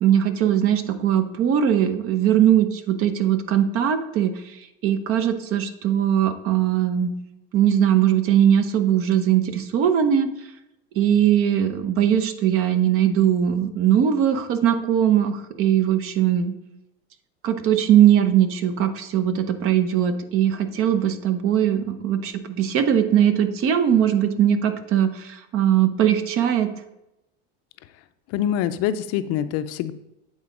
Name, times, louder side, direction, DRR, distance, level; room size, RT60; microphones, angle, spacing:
voice 1, 0.0-4.3 4.8-7.1 7.5-10.3 11.0-16.5 17.4-26.7, right 10 dB, 50° right, 10 dB, 0.8 m, -20 dB
voice 2, 28.3-29.9, left 10 dB, 55° left, 12 dB, 0.5 m, -25 dB
8.7 x 3.9 x 5.0 m, 0.91 s
supercardioid pair, 130°, 29 cm